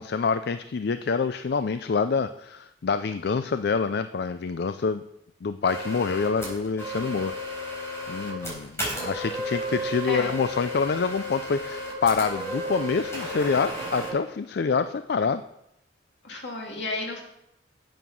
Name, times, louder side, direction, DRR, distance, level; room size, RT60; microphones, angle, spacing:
voice 1, 0.0-5.0 5.4-7.3 8.1-15.4, left 5 dB, 65° left, 11 dB, 0.4 m, -26 dB
sound 1, 5.6-14.1, equal, 15° left, 4.2 m, -33 dB
voice 2, 16.2-17.2, left 3 dB, 85° left, 1 dB, 2.4 m, -32 dB
9.0 x 7.8 x 6.3 m, 0.82 s
head